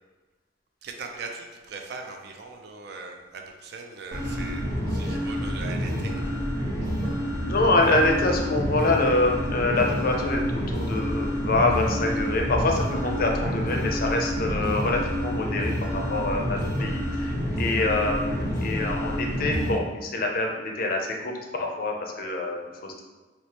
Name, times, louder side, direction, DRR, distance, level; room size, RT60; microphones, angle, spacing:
voice 1, 0.8-6.3, right 4 dB, 60° right, 3 dB, 0.4 m, -40 dB
sound 1, 4.1-19.7, equal, 20° right, 1.1 m, -28 dB
voice 2, 7.4-23.0, left 2 dB, 50° left, 2 dB, 0.5 m, -26 dB
4.7 x 2.0 x 2.8 m, 1.2 s
head